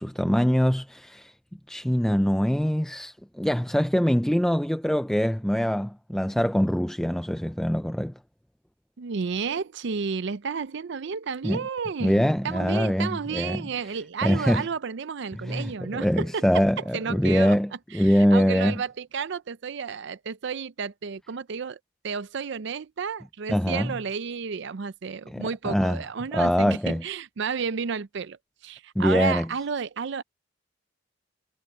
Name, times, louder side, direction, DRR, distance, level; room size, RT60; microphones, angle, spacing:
voice 1, 0.0-1.3 1.7-8.1 11.4-11.6 12.0-13.6 14.2-14.7 15.4-18.7 23.5-23.9 25.3-26.0 26.3-27.0 29.0-29.4, equal, 5° left, 0.4 m, -23 dB
voice 2, 9.0-17.6 17.9-30.2, right 5 dB, 60° right, 0.5 m, -32 dB
head